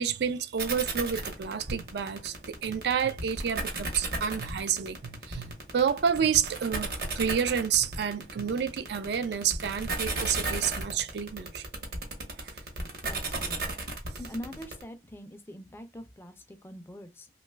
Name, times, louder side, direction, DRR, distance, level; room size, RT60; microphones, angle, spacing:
voice 1, 0.0-11.6 12.4-12.5, right 7 dB, 70° right, 0.4 m, -29 dB
sound 1, 0.6-14.8, right 3 dB, 55° right, 0.9 m, -34 dB
voice 2, 13.0-13.6 13.9-17.3, equal, 15° left, 0.3 m, -43 dB
2.9 x 2.3 x 3.2 m
head